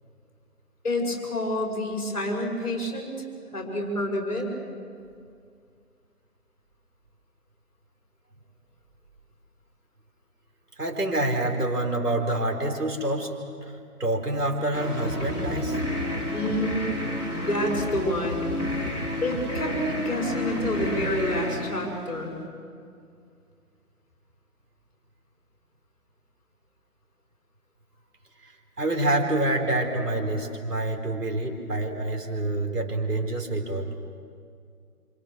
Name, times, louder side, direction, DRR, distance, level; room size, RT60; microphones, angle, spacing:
voice 1, 0.8-3.1 3.5-4.5 16.3-18.4 19.2-22.4, left 1 dB, 30° left, 0 dB, 5.4 m, -28 dB
voice 2, 10.8-15.8 28.4-28.5 28.8-33.9, right 1 dB, 80° right, 2 dB, 4.5 m, -27 dB
sound 1, 14.7-22.4, left 1 dB, 10° right, 3.3 m, -30 dB
28.0 x 26.0 x 6.4 m, 2.3 s
figure-of-eight pair, 160°, 46 cm